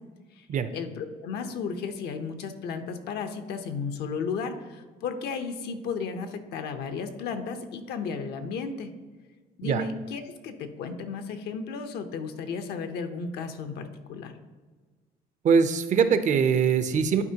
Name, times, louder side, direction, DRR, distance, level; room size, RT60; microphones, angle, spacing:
voice 1, 0.7-8.9 9.6-14.3, left 5 dB, 75° left, 7 dB, 0.8 m, -34 dB
voice 2, 15.4-17.2, right 6 dB, 45° right, 10 dB, 0.5 m, -22 dB
11.0 x 4.4 x 2.8 m, 1.4 s
cardioid pair, 110°, 17 cm